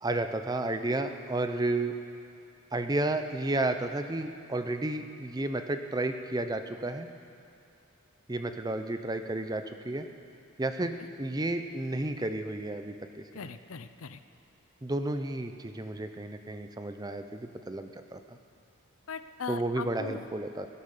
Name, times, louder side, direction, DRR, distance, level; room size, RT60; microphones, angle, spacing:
voice 1, 0.0-1.9 2.7-7.1 8.3-10.1 10.6-13.2 14.8-18.4 19.5-20.7, right 2 dB, 20° right, 7 dB, 0.6 m, -32 dB
voice 2, 13.3-14.2 19.1-20.3, left 5 dB, 70° left, 11 dB, 0.6 m, -39 dB
17.5 x 11.0 x 6.7 m, 2.5 s
head